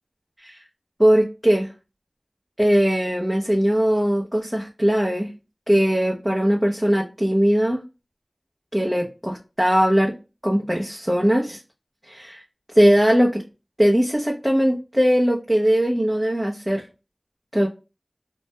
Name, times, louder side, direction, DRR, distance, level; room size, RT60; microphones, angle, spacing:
voice 1, 1.0-1.7 2.6-5.3 5.7-7.8 8.7-10.1 10.4-11.6 12.1-12.4 12.7-13.4 13.8-16.9 17.5-17.7, equal, 10° right, -2 dB, 0.5 m, -20 dB
2.2 x 2.1 x 2.7 m, 0.28 s
wide cardioid pair, 50°, 0 cm